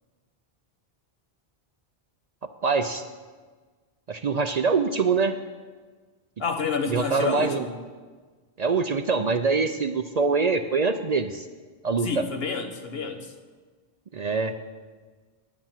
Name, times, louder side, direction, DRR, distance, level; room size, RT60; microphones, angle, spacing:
voice 1, 2.6-3.0 4.1-5.3 6.9-7.6 8.6-11.5 11.8-12.1 14.1-14.5, right 4 dB, 50° right, 8 dB, 0.6 m, -24 dB
voice 2, 6.4-7.8 12.0-13.3, left 5 dB, 70° left, 5 dB, 1.3 m, -29 dB
10.5 x 8.8 x 7.3 m, 1.4 s
omnidirectional pair, 1.0 m